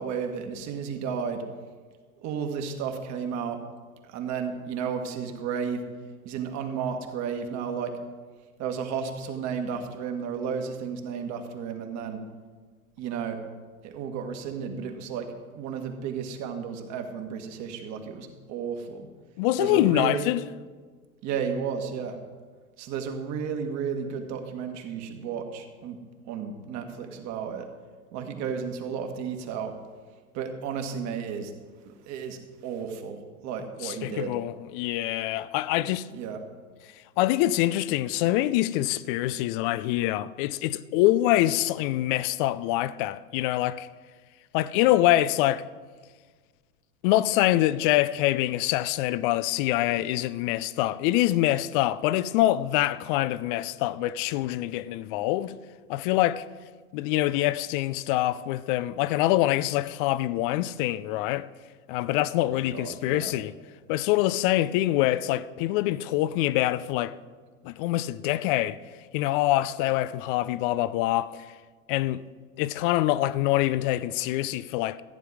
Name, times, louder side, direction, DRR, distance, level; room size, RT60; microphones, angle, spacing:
voice 1, 0.0-1.4 2.2-3.6 4.0-5.8 6.2-8.0 8.6-12.2 13.0-13.4 13.8-19.1 19.6-20.3 21.2-22.2 22.8-26.0 26.3-27.7 28.1-29.7 30.3-31.5 31.9-34.3 36.1-36.4 62.4-63.3, right 6 dB, 40° right, 1.8 m, -33 dB
voice 2, 19.4-20.4 33.8-36.1 37.2-43.9 44.5-45.7 47.0-55.6 55.9-56.4 56.9-61.5 61.9-63.5 63.9-67.1 67.6-68.8 69.1-71.5 71.9-72.2 72.6-75.0, left 15 dB, 40° left, 0.5 m, -25 dB
14.5 x 9.4 x 4.9 m
figure-of-eight pair, 95°, 43 cm